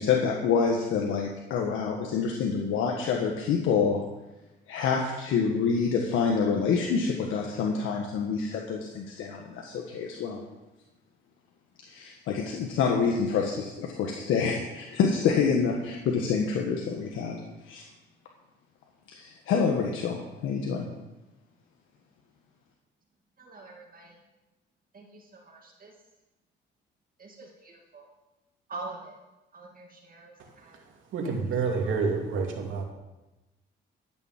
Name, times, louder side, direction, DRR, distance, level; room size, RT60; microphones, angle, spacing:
voice 1, 0.0-4.0 4.7-10.4 11.8-17.4 17.6-17.8 19.1-20.9, left 5 dB, 90° left, 1 dB, 1.4 m, -27 dB
voice 2, 23.4-24.1 24.9-25.0 25.5-25.9 27.2-27.5 27.9-28.0 28.7-29.1 29.5-30.3 30.6-30.7, right 3 dB, 45° right, 0 dB, 2.3 m, -43 dB
voice 3, 31.1-32.8, right 4 dB, 80° right, 1 dB, 2.6 m, -28 dB
12.0 x 6.9 x 7.4 m, 1.0 s
cardioid pair, 90°, 20 cm